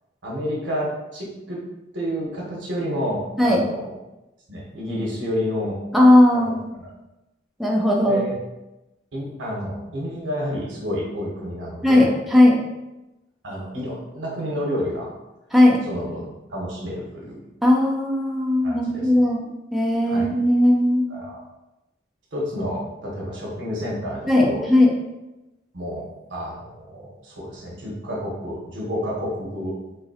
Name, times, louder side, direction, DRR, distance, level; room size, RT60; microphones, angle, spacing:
voice 1, 0.2-1.6 1.9-4.0 4.5-5.8 6.7-6.9 8.0-8.3 9.1-12.1 13.4-15.1 15.9-17.4 18.6-19.3 20.1-20.3 21.1-21.4 22.3-24.7 25.7-29.8, equal, 80° right, -4 dB, 1.2 m, -30 dB
voice 2, 5.9-6.7 7.6-8.2 11.8-12.6 15.5-15.8 17.6-19.4 19.7-21.0 24.3-24.9, left 1 dB, ahead, -3 dB, 0.4 m, -17 dB
4.0 x 2.9 x 2.7 m, 0.98 s
head